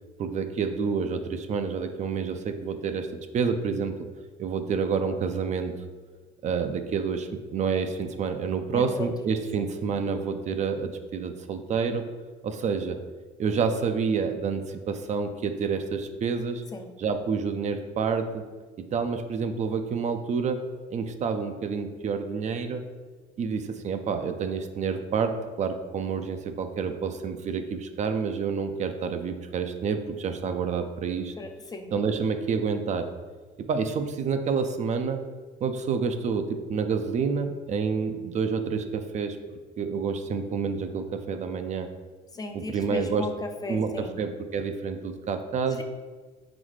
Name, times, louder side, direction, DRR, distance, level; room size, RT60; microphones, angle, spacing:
voice 1, 0.2-3.1 3.3-4.1 4.4-5.7 6.4-12.0 12.4-13.0 13.4-16.6 17.0-18.4 18.8-20.6 20.9-22.8 23.4-31.3 31.9-33.1 33.6-35.2 35.6-39.4 39.8-41.9 42.5-43.3 43.7-45.8, right 5 dB, 45° right, 7 dB, 0.4 m, -28 dB
voice 2, 8.7-9.1 9.6-9.7 16.7-16.9 31.4-31.9 42.3-44.1, left 2 dB, 20° left, 5 dB, 0.4 m, -36 dB
4.2 x 4.0 x 3.1 m, 1.4 s
cardioid pair, 110°, 17 cm